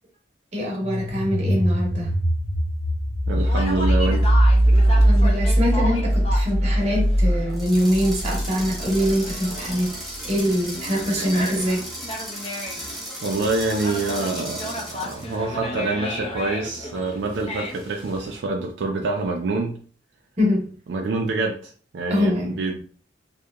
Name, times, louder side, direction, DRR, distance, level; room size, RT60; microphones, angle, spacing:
voice 1, 0.5-2.1 5.0-10.0 10.2-11.9 20.4-20.7 22.1-22.6, equal, 40° right, -2 dB, 0.8 m, -23 dB
sound 1, 0.8-9.5, equal, 85° left, 0.6 m, -20 dB
voice 2, 3.3-4.3 13.2-19.8 20.9-22.8, right 3 dB, 70° right, 1 dB, 0.4 m, -26 dB
Conversation, 3.4-18.4, left 1 dB, 35° left, 0.5 m, -35 dB
sound 2, 7.5-15.3, equal, ahead, 0.8 m, -36 dB
2.8 x 2.1 x 2.2 m, 0.43 s
head